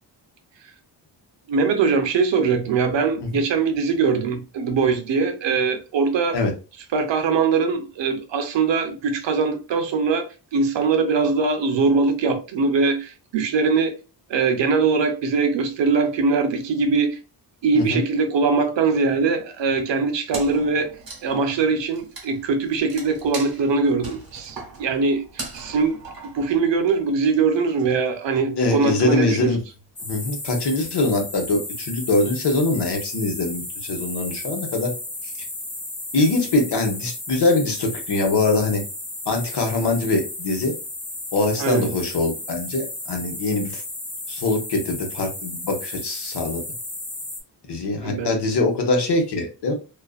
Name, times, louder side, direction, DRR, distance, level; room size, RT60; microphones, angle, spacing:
voice 1, 1.5-6.4 6.9-13.9 14.3-17.2 17.6-20.9 21.2-25.2 25.5-26.0 26.2-29.5 41.6-41.9 48.0-48.3, right 4 dB, 80° right, 0.7 m, -22 dB
Wood, 20.3-27.0, right 3 dB, 55° right, 0.9 m, -38 dB
voice 2, 28.6-29.6 30.0-34.9 36.1-38.8 39.3-40.7 41.3-43.8 44.3-46.6 47.7-49.7, left 2 dB, 65° left, 0.9 m, -23 dB
sound 1, 30.0-47.4, left 2 dB, 15° left, 0.6 m, -34 dB
2.4 x 2.4 x 2.3 m
wide cardioid pair, 175°, 43 cm